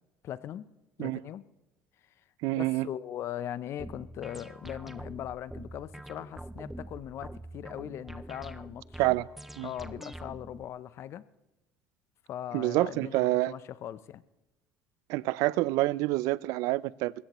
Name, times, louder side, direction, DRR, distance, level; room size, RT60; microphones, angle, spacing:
voice 1, 0.2-0.6 1.0-1.4 2.5-9.2 9.6-11.2 12.3-14.2, left 11 dB, 50° left, 0.6 m, -40 dB
voice 2, 2.4-2.9 9.0-9.3 9.6-9.7 12.5-13.5 15.1-17.1, right 19 dB, 75° right, 0.4 m, -27 dB
sound 1, 3.8-10.6, right 1 dB, 5° right, 0.4 m, -45 dB
21.5 x 16.0 x 3.1 m
cardioid pair, 125°, 6 cm